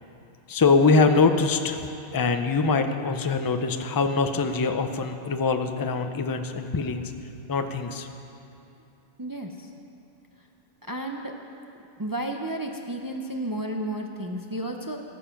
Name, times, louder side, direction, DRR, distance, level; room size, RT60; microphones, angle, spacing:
voice 1, 0.5-7.1 7.5-8.1, left 4 dB, 30° left, 7 dB, 0.4 m, -23 dB
voice 2, 9.2-9.7 10.8-11.3 12.0-15.0, right 1 dB, 25° right, 2 dB, 0.5 m, -32 dB
19.5 x 7.0 x 5.8 m, 2.8 s
omnidirectional pair, 1.2 m